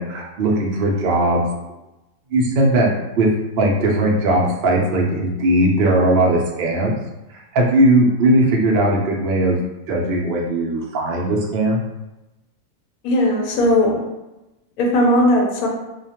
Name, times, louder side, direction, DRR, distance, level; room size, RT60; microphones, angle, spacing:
voice 1, 0.0-1.5 2.3-2.9 3.2-3.3 3.6-7.0 7.5-9.6 9.9-11.8, right 1 dB, 70° right, -1 dB, 0.5 m, -18 dB
voice 2, 13.0-14.0 14.8-15.7, left 1 dB, 85° left, -1 dB, 1.1 m, -17 dB
2.3 x 2.2 x 2.8 m, 1.0 s
omnidirectional pair, 1.5 m